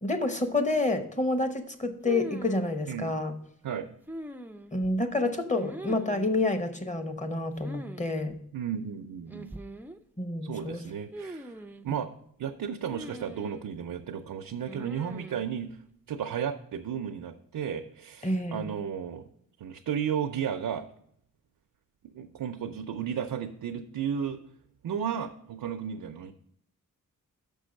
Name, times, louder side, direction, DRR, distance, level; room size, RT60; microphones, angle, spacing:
voice 1, 0.0-3.4 4.7-8.4 10.2-10.8 18.2-18.7, left 2 dB, 20° left, 8 dB, 0.9 m, -28 dB
sound 1, 2.1-2.8 4.1-4.9 5.6-6.3 7.6-8.0 8.3-8.4 9.3-10.0 11.1-11.9 12.9-13.7 14.7-15.4, right 1 dB, 5° right, 0.4 m, -41 dB
voice 2, 8.5-9.5 10.4-11.5 11.8-12.1 12.4-15.8 16.1-19.2 19.6-20.9 22.1-24.4 24.8-26.3, right 8 dB, 80° right, 5 dB, 0.6 m, -33 dB
6.5 x 5.4 x 6.3 m, 0.67 s
wide cardioid pair, 85°, 33 cm